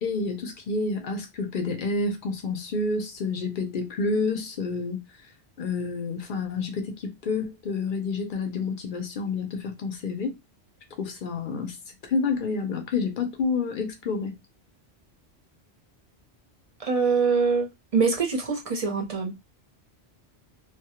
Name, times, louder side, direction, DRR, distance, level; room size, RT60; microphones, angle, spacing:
voice 1, 0.0-5.0 5.6-10.4 11.0-11.8 12.0-14.3, left 4 dB, 55° left, 0.7 m, -29 dB
voice 2, 16.8-19.3, right 5 dB, 45° right, 0.5 m, -24 dB
2.2 x 2.0 x 2.8 m
omnidirectional pair, 1.1 m